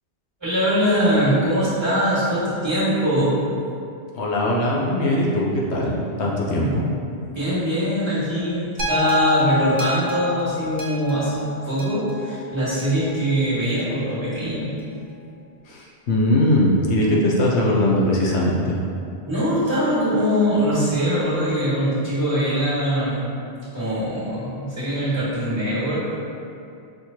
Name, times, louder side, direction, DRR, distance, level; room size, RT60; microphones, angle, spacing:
voice 1, 0.4-3.4 6.6-6.7 7.1-14.7 19.3-23.2 23.6-26.0, equal, 25° right, -11 dB, 1.6 m, -22 dB
voice 2, 4.2-6.8 15.7-18.8, left 1 dB, 80° left, -4 dB, 1.0 m, -20 dB
sound 1, 8.8-13.1 13.8-13.9, left 4 dB, 50° right, 0.8 m, -27 dB
5.7 x 3.0 x 2.8 m, 2.5 s
omnidirectional pair, 1.1 m